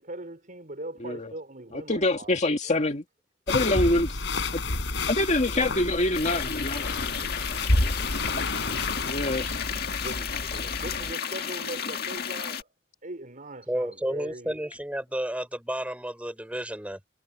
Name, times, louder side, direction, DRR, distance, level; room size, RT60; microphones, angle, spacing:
voice 1, 0.0-2.3 2.6-2.9 7.7-8.7 10.0-12.7 13.0-14.6, right 1 dB, 45° right, 4.7 m, -41 dB
voice 2, 1.0-1.3 1.7-3.0 3.5-4.2 4.5-4.6 5.1-7.0 9.0-9.6, left 2 dB, 40° left, 2.1 m, -25 dB
sound 1, 3.5-11.1, left 2 dB, 70° left, 3.9 m, -30 dB
sound 2, 6.1-12.6, left 7 dB, 55° left, 1.9 m, -33 dB
voice 3, 13.7-17.0, equal, 5° right, 5.4 m, -32 dB
head